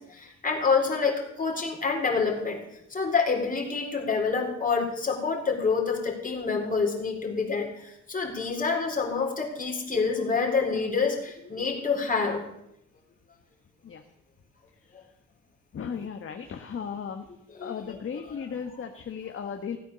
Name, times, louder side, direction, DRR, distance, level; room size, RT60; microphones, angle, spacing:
voice 1, 0.1-2.6 2.9-12.4 14.9-15.0 17.5-17.7 18.3-18.4, left 5 dB, 25° left, 1 dB, 4.0 m, -27 dB
voice 2, 15.7-17.3 17.6-19.8, left 7 dB, 45° left, 5 dB, 1.4 m, -36 dB
16.5 x 9.2 x 6.9 m, 0.81 s
cardioid pair, 90°, 30 cm